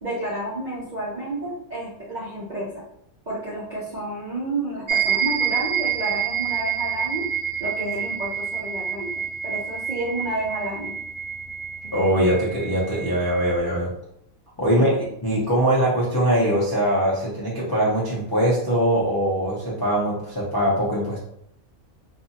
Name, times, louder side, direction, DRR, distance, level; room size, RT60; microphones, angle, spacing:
voice 1, 0.0-2.8 3.3-7.2 7.6-9.1 9.4-10.9 14.7-15.0, right 1 dB, 50° right, -7 dB, 0.5 m, -30 dB
sound 1, 4.9-13.6, right 8 dB, 70° right, 0.9 m, -28 dB
voice 2, 11.9-13.9 14.6-15.0 15.2-21.2, right 1 dB, 35° left, -7 dB, 0.3 m, -22 dB
2.6 x 2.4 x 2.7 m, 0.73 s
omnidirectional pair, 1.5 m